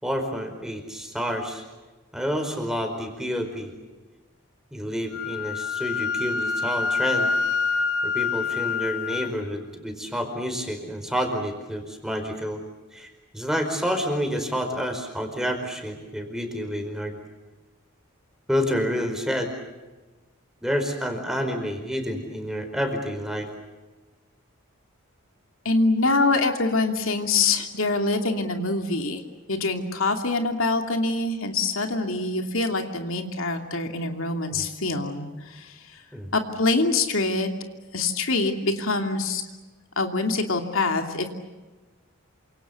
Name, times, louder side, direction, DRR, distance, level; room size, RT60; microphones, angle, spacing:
voice 1, 0.0-1.6 2.1-3.7 4.7-7.3 8.0-12.6 12.9-17.2 18.5-19.5 20.6-23.5 34.5-34.6 36.1-36.3, equal, ahead, 5 dB, 4.7 m, -29 dB
Wind instrument woodwind instrument, 5.1-9.3, left 5 dB, 85° left, 1.6 m, -26 dB
voice 2, 25.6-29.2 29.5-35.7 36.3-37.5 37.9-39.4 40.0-41.3, left 3 dB, 70° left, 4 dB, 2.7 m, -25 dB
28.5 x 26.5 x 7.1 m, 1.2 s
head